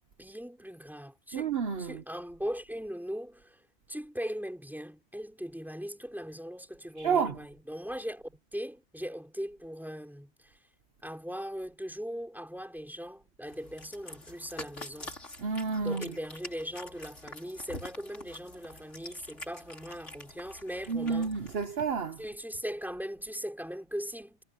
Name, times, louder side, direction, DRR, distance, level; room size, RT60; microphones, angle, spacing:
voice 1, 0.2-10.6 11.0-15.2 15.8-21.3 22.2-24.4, equal, ahead, 3.7 m, -39 dB
voice 2, 1.3-2.0 7.0-7.4 15.4-16.1 20.9-22.2, right 5 dB, 55° right, 1.1 m, -30 dB
Cat, 13.5-21.6, left 2 dB, 70° left, 5.5 m, -47 dB
omnidirectional pair, 1.3 m